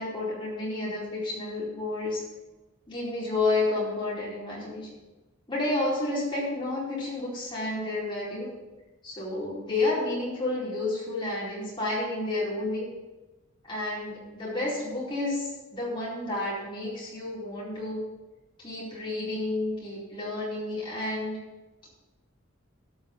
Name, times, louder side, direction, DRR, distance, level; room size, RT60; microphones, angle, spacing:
voice 1, 0.0-2.2 2.9-4.9 5.5-8.5 9.0-12.9 13.6-18.0 18.6-21.4 21.8-21.9, left 2 dB, 25° left, -7 dB, 4.5 m, -30 dB
13.5 x 5.6 x 7.3 m, 1.2 s
head